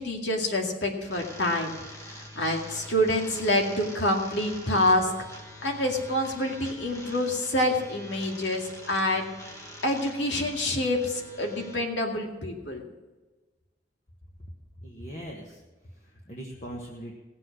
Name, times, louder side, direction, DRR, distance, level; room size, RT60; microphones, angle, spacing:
voice 1, 0.0-1.7 2.4-5.1 5.6-9.3 9.8-12.9, left 1 dB, 80° left, 1 dB, 2.3 m, -27 dB
sound 1, 1.0-11.8, left 1 dB, 15° left, 1.5 m, -45 dB
voice 2, 14.8-17.1, equal, 40° left, -1 dB, 1.4 m, -41 dB
17.0 x 7.6 x 6.2 m, 1.2 s
head